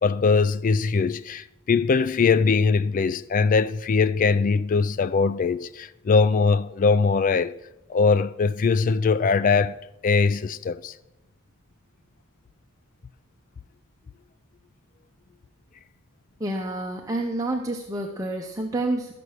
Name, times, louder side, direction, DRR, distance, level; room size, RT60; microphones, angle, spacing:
voice 1, 0.0-7.6 7.9-9.8 10.0-10.9, left 4 dB, 40° left, 0.3 m, -21 dB
voice 2, 16.4-19.1, right 2 dB, 15° right, 0.7 m, -28 dB
13.5 x 6.8 x 6.3 m
head